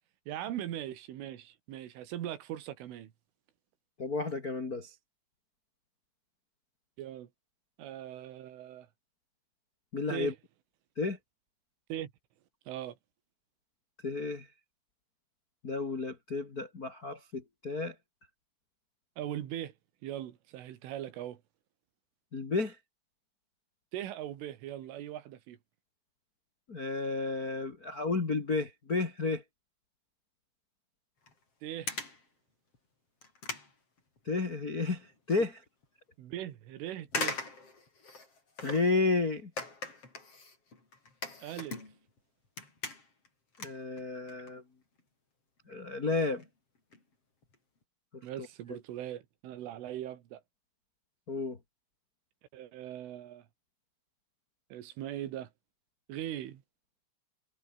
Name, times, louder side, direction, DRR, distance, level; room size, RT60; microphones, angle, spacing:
voice 1, 0.3-3.1 7.0-7.3 7.8-8.9 10.1-10.4 11.9-12.1 12.7-13.0 19.2-19.7 20.0-21.4 23.9-25.6 31.6-32.0 36.2-37.4 41.4-41.8 48.2-50.4 52.5-53.5 54.7-55.5 56.1-56.6, right 12 dB, 80° right, 4.7 m, -40 dB
voice 2, 4.0-4.9 9.9-10.3 11.0-11.2 14.0-14.5 15.6-17.9 22.3-22.7 26.7-29.4 34.2-35.6 38.6-39.5 43.6-44.6 45.7-46.4 48.1-48.2 48.7-48.8 51.3-51.6, left 3 dB, 55° left, 0.9 m, -32 dB
sound 1, 31.3-31.4 31.9-32.3 32.7-32.8 33.2-34.6 34.9-35.4 35.8-35.9 37.1-39.0 39.6-42.2 42.4-43.3 43.5-44.5 44.8-45.0 45.7-45.8 46.1-46.2 46.4-46.5 46.8-47.0 47.4-47.6 47.8-47.9, left 3 dB, 30° left, 6.8 m, -40 dB
omnidirectional pair, 5.7 m